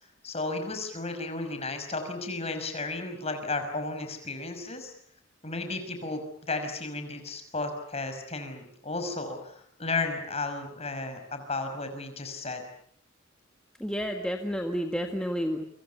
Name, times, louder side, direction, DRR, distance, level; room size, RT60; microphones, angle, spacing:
voice 1, 0.2-4.9 5.4-9.5 9.8-12.6, left 3 dB, 30° left, 7 dB, 5.8 m, -33 dB
voice 2, 13.8-15.6, equal, 5° left, 3 dB, 1.8 m, -30 dB
29.0 x 25.5 x 7.0 m, 0.64 s
head